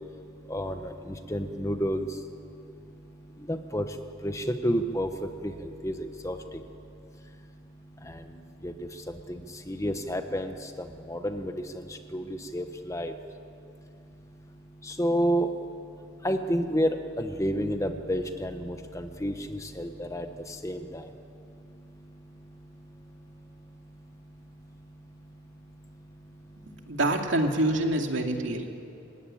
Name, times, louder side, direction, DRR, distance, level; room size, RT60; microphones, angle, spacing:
voice 1, 0.5-0.9 1.3-2.1 3.5-3.8 4.2-5.1 5.4-5.5 5.8-6.4 8.6-8.7 9.3-9.4 9.7-10.5 11.1-11.5 12.1-12.2 12.5-13.1 15.0-15.5 16.2-20.2 20.6-21.0, equal, 15° left, 7 dB, 0.9 m, -29 dB
voice 2, 26.6-28.7, right 1 dB, 65° right, 3 dB, 2.5 m, -26 dB
27.5 x 16.5 x 10.0 m, 2.6 s
head